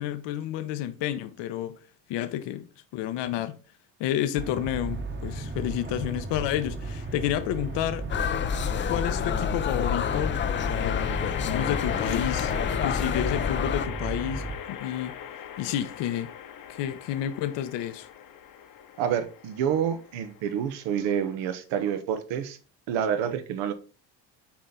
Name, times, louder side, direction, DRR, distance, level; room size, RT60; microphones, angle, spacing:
voice 1, 0.0-1.8 2.1-2.7 2.9-3.6 4.0-8.1 8.9-10.4 10.8-12.5 12.8-15.1 15.6-16.3 16.7-18.1, left 12 dB, 75° left, 1.0 m, -30 dB
sound 1, 4.4-14.6, right 2 dB, 25° right, 1.1 m, -35 dB
sound 2, 6.9-7.5 10.0-21.3, left 9 dB, 50° left, 0.9 m, -39 dB
sound 3, 8.1-13.9, left 8 dB, 30° left, 0.5 m, -28 dB
voice 2, 19.0-22.6 22.9-23.7, right 8 dB, 85° right, 1.1 m, -28 dB
7.3 x 4.4 x 3.8 m
cardioid pair, 110°, 43 cm